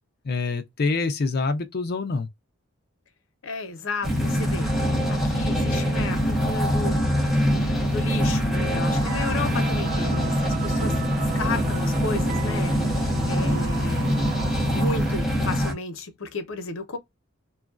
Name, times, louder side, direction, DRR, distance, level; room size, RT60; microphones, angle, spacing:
voice 1, 0.2-2.3, left 3 dB, 50° left, 0.5 m, -26 dB
voice 2, 3.4-4.7 5.1-7.1 7.6-11.0 11.3-14.2 14.7-17.0, left 3 dB, 80° left, 0.7 m, -33 dB
sound 1, 4.0-15.7, equal, ahead, 0.9 m, -24 dB
sound 2, 8.9-15.2, right 6 dB, 40° right, 0.4 m, -36 dB
2.9 x 2.4 x 2.3 m
head